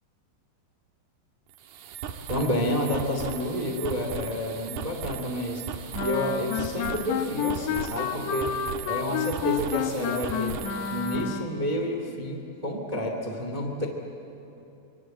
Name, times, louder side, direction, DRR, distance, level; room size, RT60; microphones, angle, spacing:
sound 1, 1.5-11.3, right 7 dB, 70° right, 3.2 m, -38 dB
voice 1, 2.3-8.5 8.8-10.6 10.9-13.9, equal, 25° right, 2 dB, 0.9 m, -29 dB
Wind instrument woodwind instrument, 5.9-11.6, left 8 dB, 75° left, 3.1 m, -30 dB
25.5 x 24.5 x 7.8 m, 2.9 s
omnidirectional pair, 5.1 m